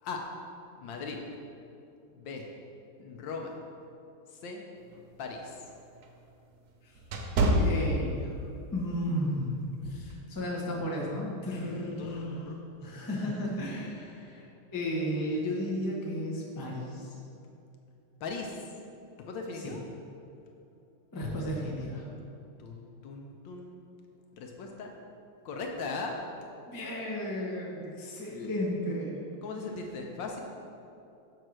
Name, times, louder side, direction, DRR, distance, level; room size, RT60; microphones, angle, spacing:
voice 1, 0.8-1.2 2.1-2.5 3.0-3.6 4.3-4.6 5.2-5.6 12.0-12.5 18.2-18.7 19.2-19.8 22.6-23.7 24.3-24.9 25.4-26.2 29.4-30.4, left 4 dB, 70° left, 2 dB, 1.3 m, -39 dB
sound 1, 4.8-8.6 9.0-9.2 9.8-10.1, right 1 dB, 70° right, 0.8 m, -29 dB
voice 2, 7.4-8.4 8.7-12.5 12.8-14.5 14.7-17.2 19.6-19.8 21.1-22.1 26.7-29.2, equal, 15° left, -3 dB, 0.7 m, -34 dB
6.6 x 4.6 x 6.2 m, 2.6 s
omnidirectional pair, 2.3 m